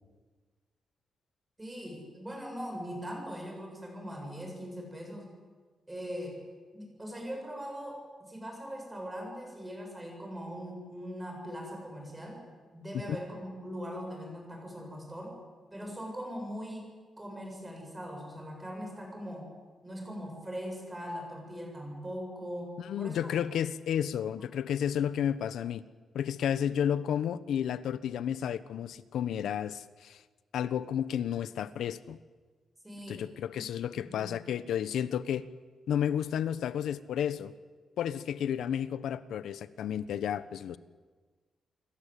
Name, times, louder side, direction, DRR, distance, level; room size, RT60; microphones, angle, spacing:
voice 1, 1.6-5.2 5.9-6.4 6.7-8.0 8.3-12.4 12.7-15.4 15.7-16.9 17.2-19.5 19.8-23.3 32.8-33.2 33.9-34.4, equal, 10° right, 1 dB, 7.9 m, -41 dB
voice 2, 22.8-25.8 26.1-30.2 30.5-32.2 33.1-35.4 35.9-37.5 38.0-40.8, left 9 dB, 85° left, 15 dB, 1.1 m, -32 dB
28.0 x 24.0 x 8.6 m, 1.4 s
wide cardioid pair, 165°, 0 cm